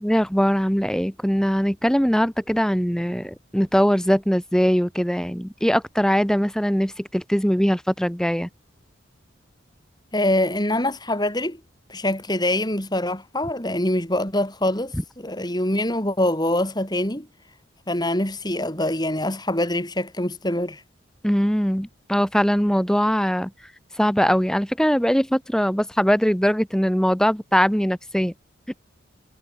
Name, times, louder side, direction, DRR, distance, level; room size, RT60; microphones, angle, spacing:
voice 1, 0.0-8.5 21.2-23.5 24.0-28.3, equal, 5° left, 1.5 m, -21 dB
voice 2, 10.1-11.6 11.9-17.3 17.9-20.8, left 1 dB, 20° left, 7.2 m, -24 dB
head